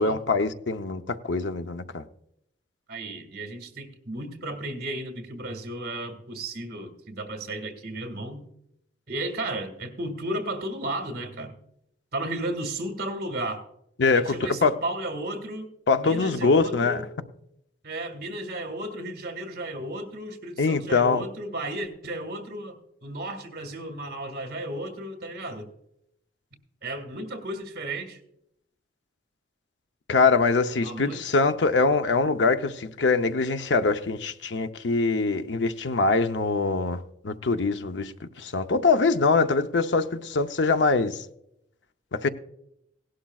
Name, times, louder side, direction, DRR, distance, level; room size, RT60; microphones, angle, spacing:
voice 1, 0.0-2.0 14.0-14.8 15.9-17.0 20.6-21.2 30.1-41.2 42.1-42.3, left 4 dB, 85° left, 0.7 m, -23 dB
voice 2, 2.9-8.4 9.1-11.5 12.1-13.6 14.1-15.7 16.0-17.1 17.8-25.7 26.8-28.2 30.8-31.2, right 1 dB, 60° right, 1.8 m, -34 dB
17.5 x 11.5 x 2.4 m
head